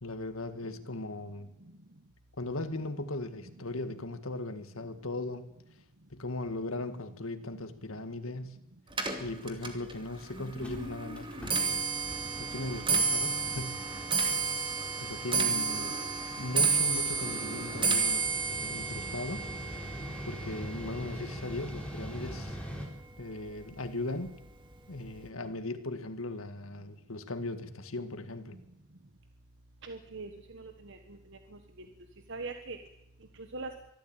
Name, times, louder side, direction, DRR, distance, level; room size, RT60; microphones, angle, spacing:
voice 1, 0.0-1.5 2.4-5.5 6.1-8.6 9.2-11.9 12.4-13.9 15.0-16.0 16.4-19.5 20.2-22.6 23.2-24.4 24.9-28.6, left 2 dB, 85° left, 1.9 m, -38 dB
Clock, 8.9-22.2 22.6-23.0 23.8-23.9 24.3-24.6 24.9-25.0, right 5 dB, 25° right, 2.6 m, -32 dB
Mechanical fan, 9.8-9.9 10.2-10.3 10.5-22.9, equal, 5° left, 3.9 m, -44 dB
voice 2, 29.8-31.2 31.8-31.9 32.3-32.8 33.5-33.7, right 3 dB, 65° right, 1.4 m, -41 dB
24.0 x 13.5 x 9.0 m
head